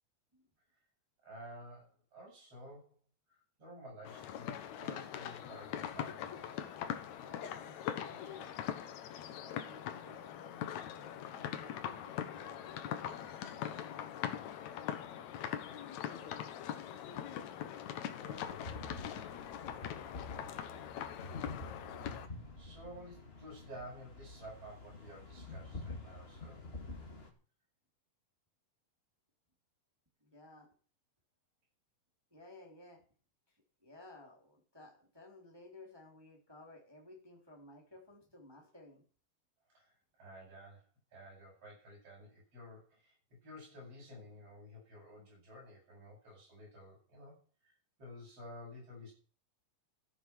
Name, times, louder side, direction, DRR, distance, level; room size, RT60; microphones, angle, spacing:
voice 1, 1.2-3.0 3.3-6.8 18.1-18.8 22.6-26.6 39.7-40.9 41.1-43.1 43.4-47.7 48.0-49.1, equal, 35° right, -3 dB, 9.1 m, -52 dB
sound 1, 4.0-22.3, left 10 dB, 90° left, 1.6 m, -42 dB
voice 2, 7.2-8.5 9.4-10.7 10.9-12.6 25.9-26.0 30.2-30.7 32.3-33.0 33.5-39.0, left 2 dB, 5° right, 0 dB, 2.3 m, -57 dB
sound 2, 18.3-27.3, left 2 dB, 35° left, 0.9 m, -48 dB
14.0 x 8.9 x 6.1 m, 0.41 s
omnidirectional pair, 4.9 m